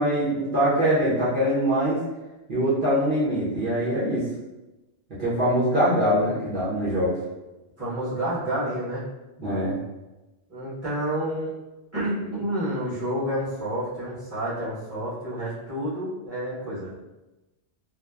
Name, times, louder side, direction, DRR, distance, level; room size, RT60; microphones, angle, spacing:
voice 1, 0.0-2.0 2.5-4.2 5.2-7.1 9.4-9.8, equal, 50° right, -12 dB, 0.9 m, -23 dB
voice 2, 7.8-9.0 10.5-11.5 11.9-16.9, right 1 dB, 15° right, -12 dB, 1.0 m, -29 dB
2.8 x 2.0 x 2.3 m, 1.0 s
omnidirectional pair, 1.2 m